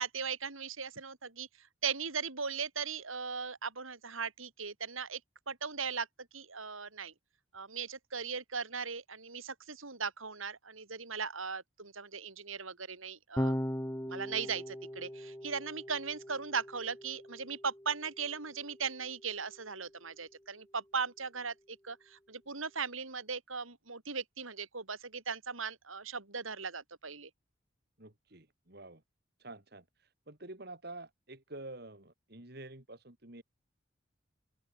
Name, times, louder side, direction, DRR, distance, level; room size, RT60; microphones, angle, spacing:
voice 1, 0.0-5.2 5.5-6.1 6.3-7.1 7.5-13.6 14.1-27.3, right 5 dB, 90° right, 4.0 m, -38 dB
Electric guitar / Bass guitar, 13.4-19.8, equal, 10° left, 2.6 m, -40 dB
voice 2, 28.0-29.0 29.4-29.8 30.3-33.4, right 2 dB, 50° right, 2.8 m, -48 dB
open air
head